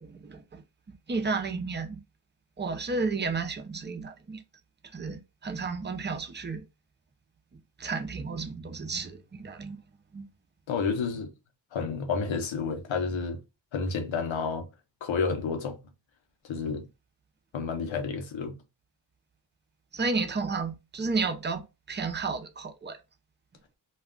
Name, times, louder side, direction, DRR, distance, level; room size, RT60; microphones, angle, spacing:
voice 1, 0.0-0.6 1.1-2.0 2.6-4.4 4.9-6.6 7.8-9.8 10.1-10.3 19.9-23.0, right 4 dB, 25° right, 0.5 m, -32 dB
voice 2, 10.7-11.3 11.7-13.4 13.7-14.7 15.0-15.8 16.4-16.9 17.5-18.6, left 5 dB, 85° left, 0.8 m, -30 dB
2.3 x 2.3 x 3.6 m
cardioid pair, 70°, 45 cm